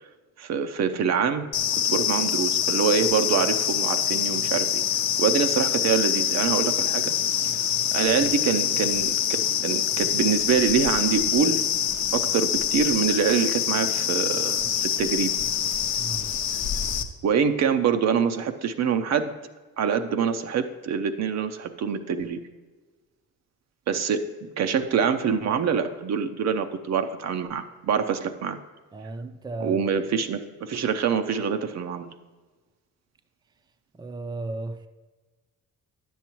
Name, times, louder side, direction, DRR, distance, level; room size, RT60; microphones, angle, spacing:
voice 1, 0.4-1.5 1.8-4.8 5.2-7.2 7.9-9.1 9.6-11.7 12.1-15.4 17.2-19.4 19.8-22.4 23.9-28.6 29.6-32.1, right 6 dB, 60° right, 8 dB, 0.6 m, -25 dB
sound 1, 1.5-17.0, left 9 dB, 70° left, 0.7 m, -25 dB
voice 2, 15.9-16.3 28.9-29.8 33.9-34.9, right 2 dB, 15° right, 8 dB, 0.5 m, -34 dB
9.9 x 7.2 x 3.0 m, 1.3 s
cardioid pair, 90°, 30 cm